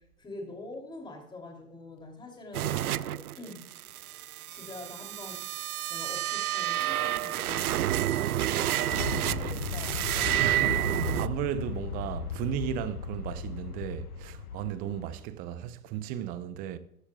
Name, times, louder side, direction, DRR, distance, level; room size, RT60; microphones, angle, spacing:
voice 1, 0.0-3.6 4.5-5.5 5.9-10.6, left 2 dB, 10° left, 2.9 m, -45 dB
sound 1, 2.5-11.3, right 13 dB, 75° right, 0.6 m, -30 dB
Aircraft, 8.9-15.2, left 6 dB, 75° left, 1.2 m, -36 dB
voice 2, 10.4-16.8, right 10 dB, 20° right, 0.6 m, -35 dB
14.5 x 12.5 x 2.3 m
hypercardioid pair, 130°, 45 cm